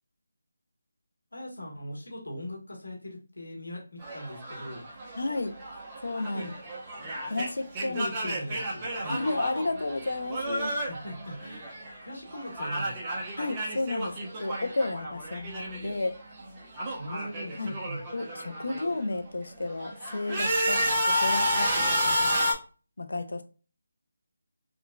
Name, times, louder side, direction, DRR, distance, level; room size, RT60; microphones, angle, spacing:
voice 1, 1.3-4.9 6.3-6.5 7.9-9.2 10.8-11.7 12.0-13.2 17.0-18.0, equal, 85° left, 1.3 m, -40 dB
sound 1, 4.0-12.0 12.3-16.1 16.3-19.0 19.5-22.5, equal, 20° right, 0.7 m, -31 dB
voice 2, 5.2-5.5 6.0-6.5 7.3-8.1 9.0-10.8 13.4-16.2 17.6-17.8 18.1-22.5 23.0-23.4, left 2 dB, 70° left, 0.5 m, -32 dB
3.7 x 2.3 x 2.2 m
figure-of-eight pair, 165°, 0 cm